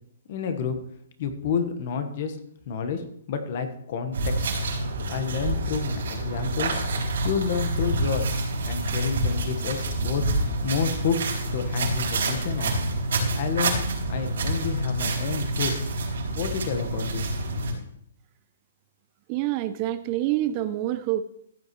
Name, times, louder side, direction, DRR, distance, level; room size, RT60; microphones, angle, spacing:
voice 1, 0.3-0.8 1.2-2.4 2.7-4.5 5.1-6.8 7.2-8.4 8.6-10.3 10.6-12.8 13.3-15.9 16.4-17.3, left 6 dB, 45° left, 8 dB, 1.3 m, -30 dB
sound 1, 4.1-17.7, right 2 dB, 70° right, 4.0 m, -27 dB
voice 2, 19.3-21.2, right 14 dB, 30° right, 13 dB, 0.4 m, -26 dB
15.0 x 8.2 x 3.1 m, 0.69 s
hypercardioid pair, 165°, 0 cm